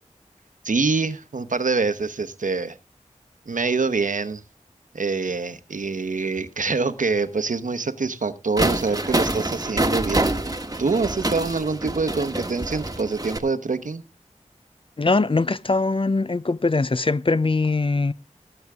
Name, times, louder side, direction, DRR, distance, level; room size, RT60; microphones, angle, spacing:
voice 1, 0.6-2.8 3.5-4.4 4.9-14.0, right 4 dB, 85° right, 1.0 m, -25 dB
sound 1, 8.6-13.4, right 2 dB, 30° right, 1.3 m, -26 dB
voice 2, 15.0-18.1, left 3 dB, 45° left, 0.6 m, -21 dB
17.5 x 8.0 x 3.5 m
wide cardioid pair, 65°, 13 cm